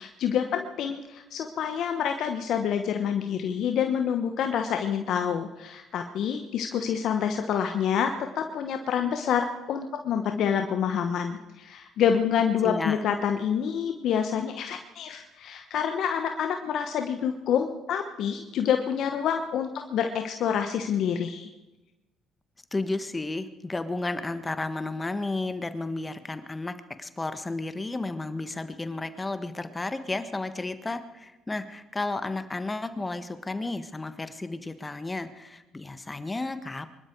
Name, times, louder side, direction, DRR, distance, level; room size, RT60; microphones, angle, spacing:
voice 1, 0.0-21.5, left 8 dB, 65° left, 6 dB, 1.2 m, -27 dB
voice 2, 12.6-13.1 22.7-36.9, left 2 dB, 20° left, 11 dB, 1.4 m, -33 dB
24.5 x 12.5 x 4.7 m, 1.0 s
supercardioid pair, 65°, 0 cm